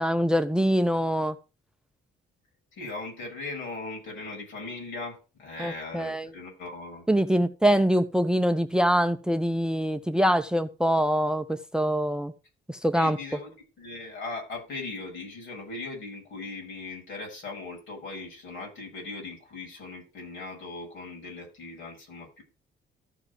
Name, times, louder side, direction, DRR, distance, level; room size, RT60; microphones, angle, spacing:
voice 1, 0.0-1.4 5.6-6.3 7.1-12.3 12.7-13.2, equal, 5° right, 0.7 m, -24 dB
voice 2, 2.7-7.1 7.6-7.8 12.9-22.4, left 3 dB, 75° left, 7.0 m, -39 dB
14.0 x 4.8 x 4.8 m
cardioid pair, 90°, 20 cm